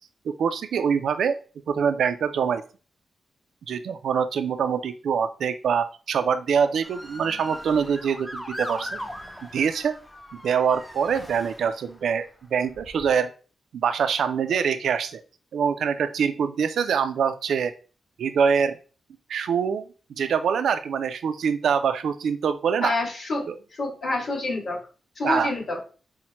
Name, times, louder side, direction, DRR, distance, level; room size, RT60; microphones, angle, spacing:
voice 1, 0.3-1.4 1.7-2.6 3.7-8.9 9.5-9.9 10.3-13.3 13.7-15.2 15.5-17.7 18.2-18.8 19.3-19.9 20.2-23.0 23.5-23.6 25.2-25.5, right 7 dB, 80° right, 10 dB, 0.4 m, -24 dB
Motor vehicle (road) / Siren, 6.8-12.1 12.7-13.1, equal, ahead, 0.4 m, -39 dB
voice 2, 22.8-23.4 23.8-24.8 25.2-25.8, left 2 dB, 50° left, -4 dB, 2.0 m, -27 dB
5.5 x 2.1 x 2.9 m, 0.37 s
wide cardioid pair, 160°, 0 cm